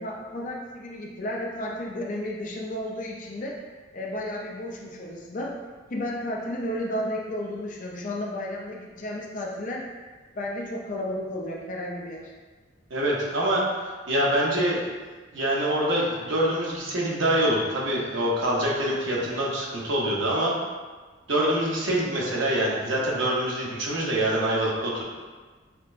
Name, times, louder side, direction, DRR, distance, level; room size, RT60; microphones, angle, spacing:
voice 1, 0.0-3.6 3.9-5.6 5.9-9.9 10.4-12.3 21.4-21.5, left 1 dB, 45° left, -1 dB, 0.5 m, -33 dB
voice 2, 12.9-13.7 14.1-14.9 15.3-20.5 21.3-25.0, right 1 dB, 85° right, -4 dB, 0.9 m, -25 dB
5.7 x 2.1 x 2.5 m, 1.4 s
head